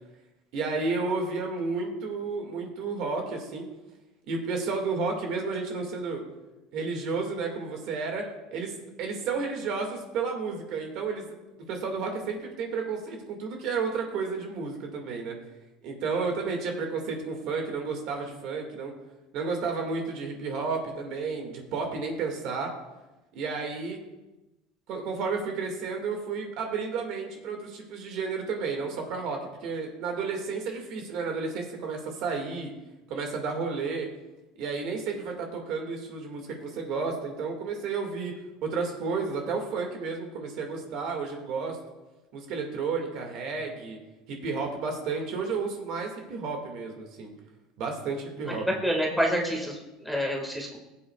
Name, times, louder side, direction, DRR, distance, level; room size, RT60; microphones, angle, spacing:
voice 1, 0.5-3.7 4.3-6.2 6.7-8.7 9.0-11.2 11.7-15.4 15.8-18.9 19.3-22.7 23.3-24.0 24.9-32.7 33.1-34.1 34.6-38.3 38.6-41.8 42.3-44.0 44.3-47.3 47.8-48.6, right 4 dB, 55° right, 2 dB, 1.9 m, -32 dB
voice 2, 48.5-50.8, equal, ahead, -2 dB, 1.8 m, -28 dB
19.5 x 7.7 x 2.3 m, 1.0 s
supercardioid pair, 135°, 0 cm